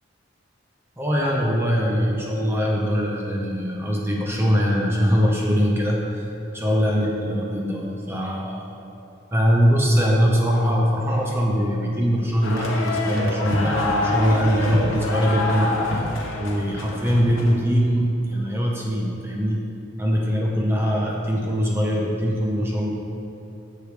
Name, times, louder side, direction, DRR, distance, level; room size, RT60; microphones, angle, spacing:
voice 1, 1.0-8.6 9.3-16.0 16.4-19.6 20.0-22.9, equal, 10° right, -2 dB, 0.6 m, -22 dB
sound 1, 12.4-17.5, left 2 dB, 80° left, 0.9 m, -26 dB
8.2 x 6.6 x 3.2 m, 2.9 s
head